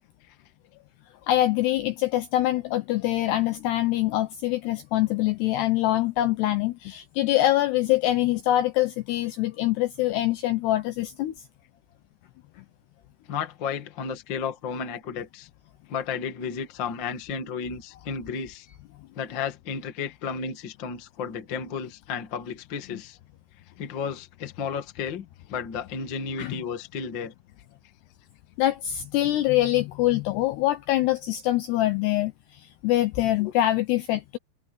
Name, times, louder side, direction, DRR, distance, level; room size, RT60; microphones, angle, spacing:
voice 1, 1.3-11.3 22.9-23.0 26.4-26.6 28.6-34.4, left 15 dB, 80° left, 2.4 m, -24 dB
voice 2, 13.3-15.5 15.9-18.7 19.1-23.2 23.8-27.3, left 6 dB, 60° left, 1.2 m, -33 dB
omnidirectional pair, 5.8 m